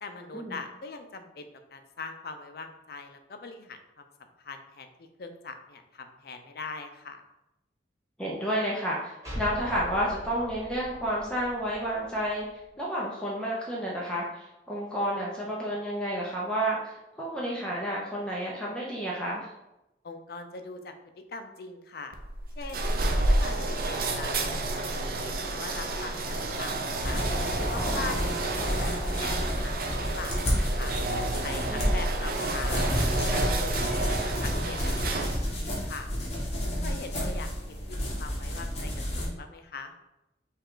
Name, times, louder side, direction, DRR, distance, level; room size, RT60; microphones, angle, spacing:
voice 1, 0.0-7.2 20.0-20.9 21.3-22.1 22.6-22.9 23.3-24.8 25.2-27.2 27.6-29.8 30.1-31.0 31.4-33.8 34.1-36.1 36.6-39.9, left 4 dB, 60° left, 7 dB, 0.5 m, -42 dB
voice 2, 8.2-12.5 12.8-19.5 27.7-28.1 31.7-32.0, equal, 5° left, -5 dB, 0.6 m, -31 dB
sound 1, 9.2-12.7, equal, 20° right, 1.3 m, -41 dB
sound 2, 22.1-35.6, right 2 dB, 55° right, 0.5 m, -30 dB
sound 3, 27.0-39.3, equal, 40° left, 1.1 m, -30 dB
5.5 x 2.4 x 3.7 m, 0.92 s
head